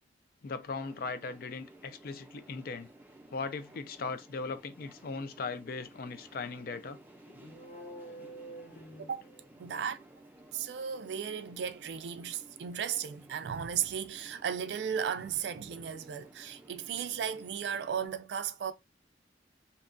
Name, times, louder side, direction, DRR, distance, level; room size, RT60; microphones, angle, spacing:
voice 1, 0.4-2.9 3.3-7.0, left 4 dB, 55° left, 0.4 m, -38 dB
sound 1, 0.8-18.1, right 1 dB, 10° right, 0.4 m, -56 dB
sound 2, 7.3-9.8, right 1 dB, 85° left, 0.7 m, -48 dB
voice 2, 9.6-10.0 10.5-18.7, right 8 dB, 75° right, 0.3 m, -35 dB
2.8 x 2.2 x 2.5 m
head